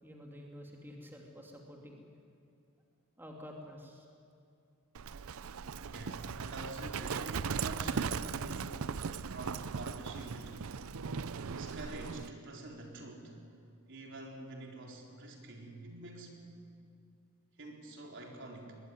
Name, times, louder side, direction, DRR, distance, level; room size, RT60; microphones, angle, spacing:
voice 1, 0.0-2.0 3.2-4.1, equal, 10° right, 0 dB, 2.8 m, -49 dB
Livestock farm animals working animals, 4.9-12.3, right 6 dB, 75° right, 0.6 m, -38 dB
voice 2, 5.8-8.8 9.3-10.6 11.5-13.4 13.9-16.4 17.6-18.7, right 2 dB, 60° right, 1 dB, 4.3 m, -46 dB
24.0 x 21.0 x 9.6 m, 2.5 s
head